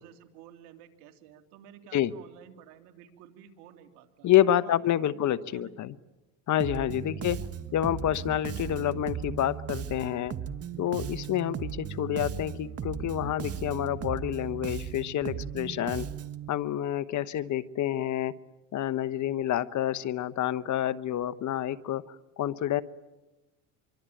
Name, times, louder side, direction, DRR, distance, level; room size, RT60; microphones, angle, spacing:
voice 1, 0.0-4.3 4.6-5.9 7.0-7.2 17.4-17.5, right 10 dB, 75° right, 7 dB, 3.1 m, -53 dB
voice 2, 4.2-5.9 6.5-7.4 7.7-10.3 10.8-16.1 16.5-18.3 18.7-22.8, left 12 dB, 45° left, 15 dB, 1.1 m, -28 dB
Bass guitar, 6.6-16.5, right 8 dB, 35° right, 1.5 m, -37 dB
26.0 x 24.0 x 9.1 m, 1.1 s
supercardioid pair, 95°, 39 cm